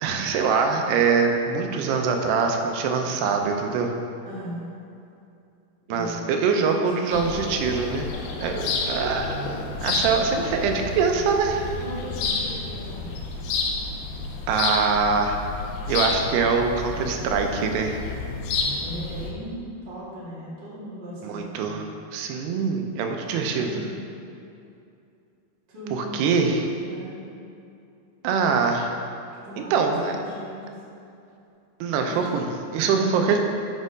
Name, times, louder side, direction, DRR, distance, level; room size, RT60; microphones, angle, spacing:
voice 1, 0.0-3.9 5.9-8.1 8.4-9.4 9.8-11.6 14.5-15.4 15.9-18.0 21.2-23.7 25.9-26.6 28.2-29.0 29.7-30.1 31.8-33.4, right 5 dB, 90° right, 4 dB, 2.8 m, -23 dB
voice 2, 4.2-4.7 5.9-6.3 6.6-7.4 11.8-13.4 18.8-21.8 23.2-23.9 25.7-26.4 26.9-27.3 29.4-31.0 32.1-32.3, equal, 35° right, -8 dB, 0.9 m, -38 dB
sound 1, 7.1-19.3, left 3 dB, 75° left, 2.3 m, -30 dB
6.3 x 6.2 x 5.3 m, 2.6 s
omnidirectional pair, 4.6 m